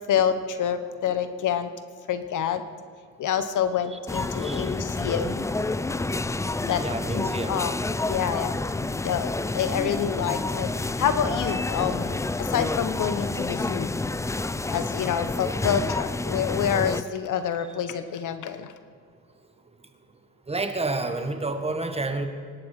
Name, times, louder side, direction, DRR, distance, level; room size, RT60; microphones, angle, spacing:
voice 1, 0.1-1.7 2.1-2.6 3.2-5.5 6.6-6.8 7.1-7.7 8.1-8.6 9.0-13.9 14.7-18.7, left 8 dB, 60° left, 11 dB, 1.2 m, -27 dB
sound 1, 4.1-17.0, left 2 dB, 10° left, 0.5 m, -29 dB
voice 2, 6.8-7.5 20.5-22.3, right 2 dB, 15° right, 7 dB, 1.5 m, -29 dB
24.5 x 11.5 x 4.9 m, 2.2 s
cardioid pair, 100°, 35 cm